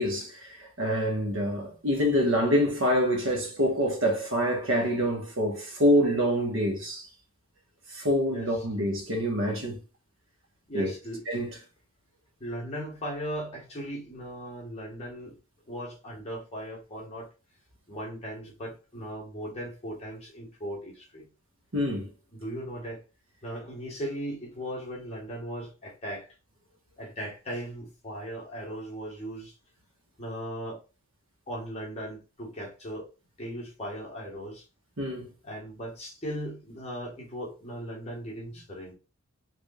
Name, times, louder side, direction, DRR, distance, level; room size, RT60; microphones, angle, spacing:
voice 1, 0.0-7.1 7.9-9.8 10.7-10.9 11.3-11.6 21.7-22.1 35.0-35.3, equal, 70° right, 1.5 m, -26 dB
voice 2, 10.7-11.2 12.4-15.4 15.7-17.3 17.9-21.3 22.3-23.0 23.4-26.3 27.0-29.6 30.2-30.8 31.5-33.1 33.4-34.7 35.4-38.9, equal, 30° left, 1.6 m, -38 dB
5.0 x 3.8 x 2.5 m
head